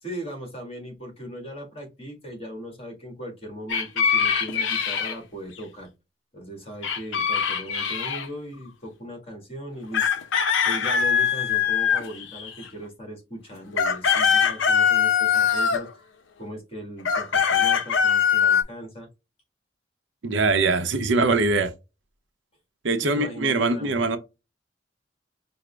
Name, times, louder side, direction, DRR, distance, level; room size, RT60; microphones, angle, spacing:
voice 1, 0.0-5.9 6.3-10.2 10.6-16.1 16.4-19.1 23.0-24.1, equal, 30° left, 1.6 m, -38 dB
sound 1, 3.7-5.2 6.8-8.3 9.9-12.7 13.5-15.9 17.0-18.6, left 7 dB, 80° left, 0.5 m, -22 dB
voice 2, 20.2-21.7 22.8-24.2, right 3 dB, 80° right, 0.7 m, -22 dB
5.0 x 2.0 x 3.2 m
head